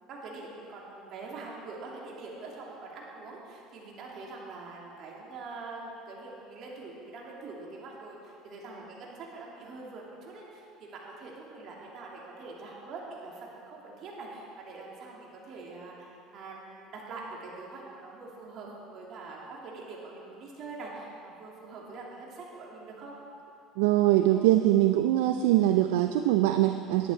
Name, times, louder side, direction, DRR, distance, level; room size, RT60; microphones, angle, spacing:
voice 1, 0.1-23.2, right 3 dB, 50° right, -3 dB, 2.8 m, -44 dB
voice 2, 23.8-27.1, right 14 dB, 75° right, 8 dB, 0.4 m, -23 dB
11.0 x 10.5 x 4.5 m, 2.6 s
hypercardioid pair, 70°, 0 cm